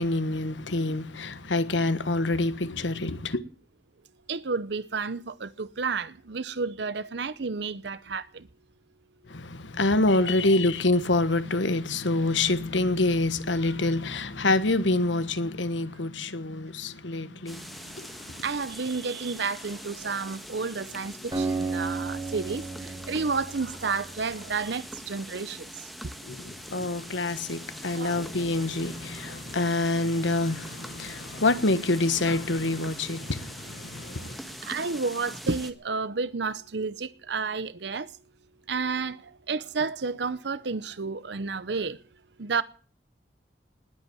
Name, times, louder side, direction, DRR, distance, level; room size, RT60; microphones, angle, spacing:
voice 1, 0.0-3.4 9.3-18.4 26.2-34.4, left 2 dB, 90° left, 1.4 m, -26 dB
voice 2, 4.3-8.5 10.2-10.4 18.4-25.9 26.8-26.9 27.9-28.2 34.5-38.1 38.7-42.0 42.4-42.6, right 4 dB, 70° right, 0.7 m, -31 dB
sound 1, 17.5-35.7, equal, ahead, 1.5 m, -43 dB
Bass guitar, 20.5-24.9, left 4 dB, 60° left, 4.4 m, -56 dB
Acoustic guitar, 21.3-24.9, right 3 dB, 20° right, 4.9 m, -33 dB
20.0 x 8.2 x 8.8 m
head